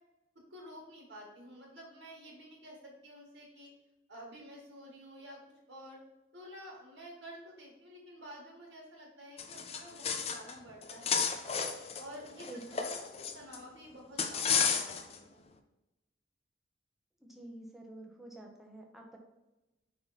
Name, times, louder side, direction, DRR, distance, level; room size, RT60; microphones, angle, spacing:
voice 1, 0.5-3.7 4.1-5.4 5.7-6.0 6.3-11.6 12.0-15.4, equal, 75° right, -3 dB, 1.9 m, -50 dB
sound 1, 9.4-10.5 10.8-13.6 14.2-15.2, left 6 dB, 30° left, 0.5 m, -32 dB
voice 2, 12.5-12.9 17.2-19.2, right 1 dB, ahead, 0 dB, 0.9 m, -48 dB
5.6 x 4.3 x 4.1 m, 1.0 s
head